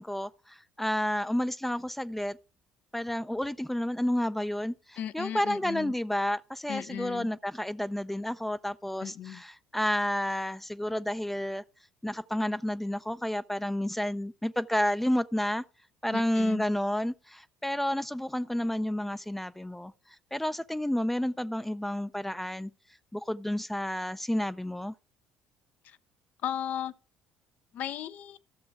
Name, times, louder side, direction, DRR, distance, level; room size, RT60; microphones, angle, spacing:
voice 1, 0.0-2.4 2.9-11.6 12.0-15.6 16.0-19.9 20.3-22.7 23.1-24.9, left 1 dB, 5° left, 0.5 m, -30 dB
voice 2, 5.0-5.9 6.7-7.3 9.0-9.4 16.1-16.6 26.4-26.9 27.7-28.4, left 10 dB, 60° left, 0.6 m, -36 dB
13.0 x 6.9 x 4.7 m
hypercardioid pair, 60°, 3 cm